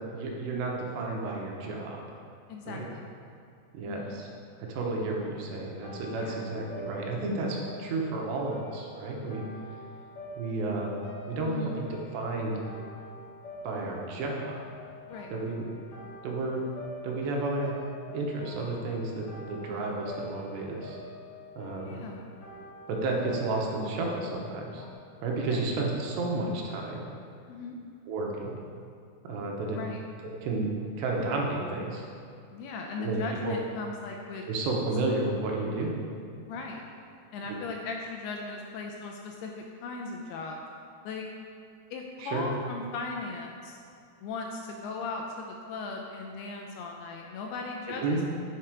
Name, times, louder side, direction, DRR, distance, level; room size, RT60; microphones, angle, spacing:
voice 1, 0.0-2.0 2.7-2.9 3.7-4.3 4.6-9.5 10.4-11.0 11.3-12.6 13.6-14.6 15.3-15.6 16.2-16.6 17.0-17.7 18.1-21.0 21.6-22.0 22.9-24.8 25.2-27.0 28.1-28.6 29.2-29.8 30.4-30.7 31.0-32.1 33.0-33.6 34.5-35.9 37.5-37.6 42.2-42.5 48.0-48.3, right 2 dB, 80° right, -1 dB, 3.2 m, -32 dB
voice 2, 2.5-3.0 3.9-4.2 6.1-6.6 11.5-11.8 15.1-15.3 21.8-22.4 25.4-25.6 27.5-27.8 29.7-30.0 32.5-34.4 36.4-36.8 37.3-40.6 41.0-41.3 41.9-43.8 44.2-48.3, left 4 dB, 80° left, 1 dB, 2.4 m, -38 dB
sound 1, 5.6-24.9, left 1 dB, 50° left, 2.5 m, -46 dB
9.7 x 5.8 x 4.8 m, 2.5 s
omnidirectional pair, 5.0 m